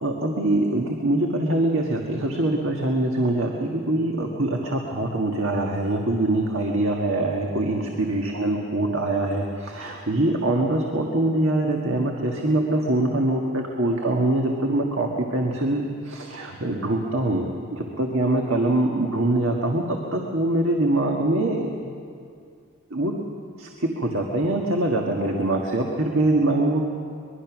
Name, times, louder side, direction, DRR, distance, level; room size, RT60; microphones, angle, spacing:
voice 1, 0.0-21.9 22.9-23.1 23.6-23.7 24.0-26.9, right 1 dB, 65° right, 0 dB, 1.7 m, -24 dB
23.5 x 21.5 x 6.2 m, 2.3 s
head